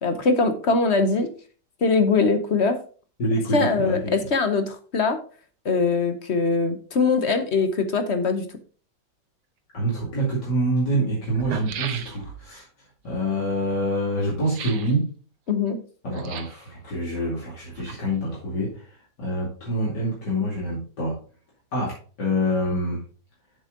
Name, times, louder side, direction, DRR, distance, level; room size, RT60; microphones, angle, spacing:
voice 1, 0.0-1.3 1.8-2.8 3.5-5.2 5.6-8.4 15.5-15.8, left 4 dB, 45° left, 8 dB, 1.0 m, -22 dB
voice 2, 3.2-4.1 9.7-12.6 13.0-15.1 16.0-18.7 19.2-21.2 21.7-23.0, equal, 70° left, -5 dB, 3.1 m, -26 dB
sound 1, 10.0-10.1 10.9-11.0 11.3-12.5 14.5-15.0 16.1-16.7 17.5-18.3 18.6-18.7, right 9 dB, 75° right, 1.4 m, -36 dB
7.4 x 7.2 x 3.8 m, 0.39 s
omnidirectional pair, 1.9 m